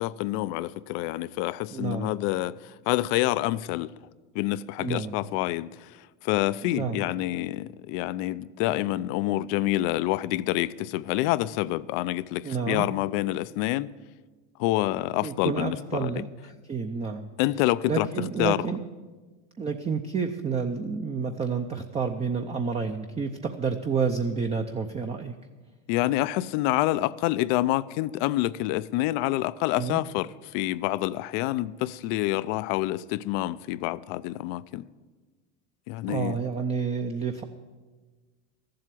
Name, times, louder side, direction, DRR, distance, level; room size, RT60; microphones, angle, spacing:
voice 1, 0.0-2.5 2.9-3.9 4.3-5.7 6.2-13.9 14.6-16.1 17.4-18.1 18.4-18.6 25.9-34.8 35.9-36.4, left 16 dB, 60° left, 0.5 m, -27 dB
voice 2, 1.7-2.1 4.8-5.2 6.6-7.1 12.4-12.9 15.2-17.3 17.9-18.8 19.6-25.4 29.8-30.0 36.1-37.4, right 5 dB, 15° right, 0.6 m, -29 dB
13.5 x 7.7 x 8.4 m
supercardioid pair, 120°, 40 cm